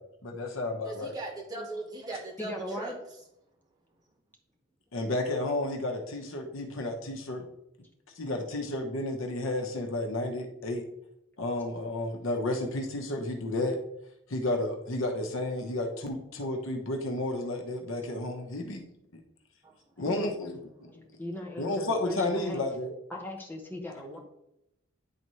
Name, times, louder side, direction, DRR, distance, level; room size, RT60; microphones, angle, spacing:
voice 1, 0.2-1.1 4.9-7.4 8.2-10.8 11.4-13.8 14.3-18.8 20.0-20.9 21.6-22.9, left 2 dB, 75° left, 3 dB, 1.0 m, -32 dB
voice 2, 0.8-2.9 19.6-19.7, right 2 dB, 20° right, -3 dB, 1.5 m, -38 dB
voice 3, 2.4-2.9 20.0-20.5 21.2-22.6 23.1-24.2, left 1 dB, 10° left, 0 dB, 1.0 m, -39 dB
9.9 x 4.1 x 3.2 m, 0.82 s
head